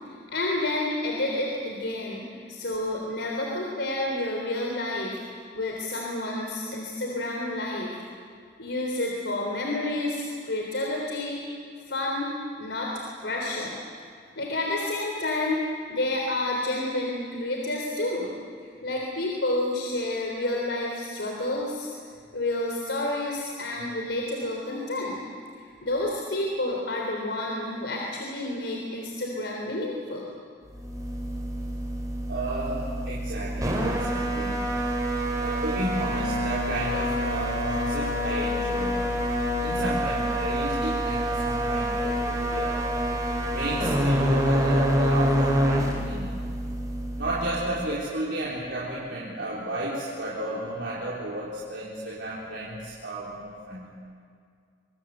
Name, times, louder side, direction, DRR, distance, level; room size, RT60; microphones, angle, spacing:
voice 1, 0.1-5.1 5.5-7.9 8.6-11.4 11.9-12.3 12.6-12.9 13.2-13.8 14.4-15.6 15.9-18.3 18.8-21.9 22.3-25.2 25.6-30.3, left 2 dB, 80° left, -1 dB, 3.6 m, -29 dB
sound 1, 30.7-47.9, equal, 20° right, 4.2 m, -27 dB
voice 2, 32.3-34.6 35.4-39.1 39.6-42.9 43.5-46.4 47.2-53.9, right 1 dB, 75° right, -6 dB, 4.1 m, -33 dB
26.0 x 22.5 x 8.0 m, 2.2 s
head